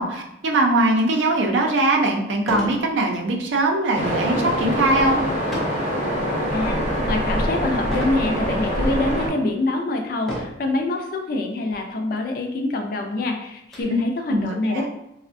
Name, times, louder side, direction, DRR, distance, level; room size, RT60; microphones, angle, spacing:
voice 1, 0.0-5.2 13.9-14.0 14.3-14.9, right 2 dB, 85° right, 2 dB, 0.5 m, -21 dB
sound 1, 2.4-2.8 3.3-3.6 5.5-5.9 6.5-6.9 7.9-8.3 9.0-9.1 10.2-10.7 11.7-11.8 12.2-12.3 12.7-13.8, equal, ahead, 0.5 m, -31 dB
Waves surf, 3.9-9.3, equal, 35° right, 0.7 m, -24 dB
voice 2, 7.1-14.9, left 2 dB, 50° left, 3 dB, 0.4 m, -25 dB
3.3 x 2.1 x 2.5 m, 0.83 s
head